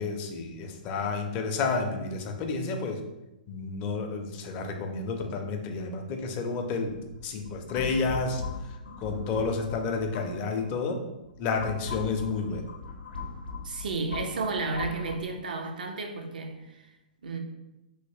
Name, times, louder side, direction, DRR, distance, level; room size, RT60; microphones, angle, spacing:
voice 1, 0.0-3.0 3.5-7.0 7.2-8.4 8.7-11.0 11.4-12.6, left 4 dB, 35° left, 0.5 m, -30 dB
sound 1, 6.8-10.7 11.2-15.2, left 4 dB, 80° left, 0.6 m, -39 dB
voice 2, 13.6-17.0 17.2-17.4, right 3 dB, 65° right, 0.5 m, -32 dB
3.1 x 2.9 x 2.7 m
figure-of-eight pair, 115°, 5 cm